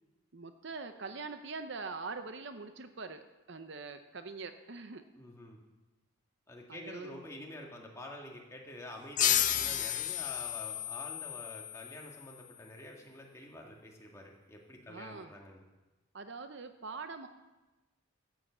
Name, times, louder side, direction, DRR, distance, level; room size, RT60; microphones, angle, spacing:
voice 1, 0.3-5.1 6.7-7.2 9.6-9.8 14.9-15.3 16.1-17.3, right 4 dB, 55° right, 9 dB, 0.7 m, -43 dB
voice 2, 5.2-5.6 6.5-15.6, left 1 dB, 15° left, 0 dB, 1.8 m, -48 dB
sound 1, 9.2-12.4, left 11 dB, 35° left, 0.4 m, -32 dB
14.0 x 7.4 x 7.3 m, 1.1 s
head